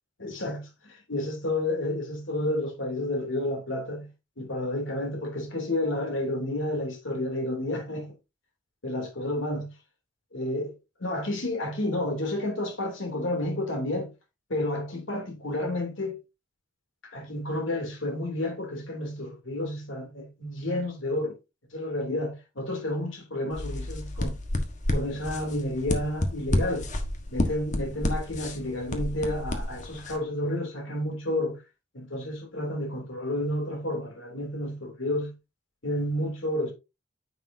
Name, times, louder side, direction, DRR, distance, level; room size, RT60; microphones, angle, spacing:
voice 1, 0.2-4.1 4.4-8.1 8.8-9.7 10.3-10.7 11.0-14.1 14.5-16.2 17.1-21.3 21.7-24.4 24.9-26.9 27.3-31.6 31.9-35.3 35.8-36.7, left 1 dB, 75° left, 2.9 m, -30 dB
sound 1, 23.5-30.1, left 1 dB, 40° left, 1.3 m, -30 dB
9.5 x 6.9 x 2.7 m
head